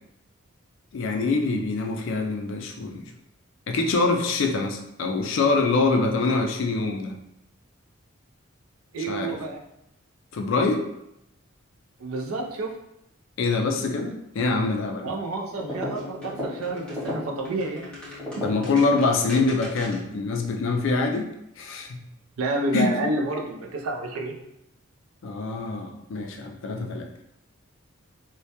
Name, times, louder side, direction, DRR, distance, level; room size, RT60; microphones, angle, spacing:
voice 1, 0.9-3.1 3.7-7.1 9.1-9.4 10.3-10.8 13.4-15.1 18.4-21.3 21.6-22.0 22.7-22.9 25.2-27.1, left 3 dB, 60° left, 4 dB, 0.3 m, -24 dB
voice 2, 8.9-9.6 12.0-12.8 15.0-18.4 22.4-24.4, right 2 dB, 75° right, 1 dB, 0.4 m, -30 dB
sound 1, 15.5-20.1, left 1 dB, 5° left, 0.5 m, -35 dB
2.1 x 2.1 x 2.8 m, 0.82 s
head